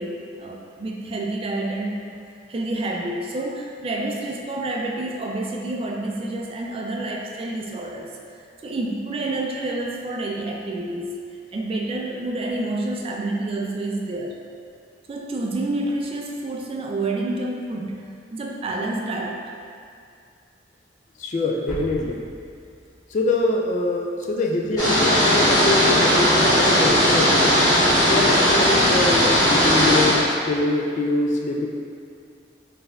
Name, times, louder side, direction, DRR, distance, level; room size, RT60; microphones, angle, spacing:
voice 1, 0.0-8.2 8.6-11.2 11.5-14.4 15.1-19.4, right 2 dB, 30° right, 0 dB, 0.3 m, -28 dB
voice 2, 21.2-22.2 23.1-27.6 28.1-31.7, left 2 dB, 40° left, 1 dB, 0.3 m, -24 dB
sound 1, 21.7-23.5 23.8-23.9, equal, ahead, 1.1 m, -38 dB
sound 2, 24.8-30.2, equal, 20° left, 1.1 m, -17 dB
4.3 x 3.3 x 2.4 m, 2.4 s
head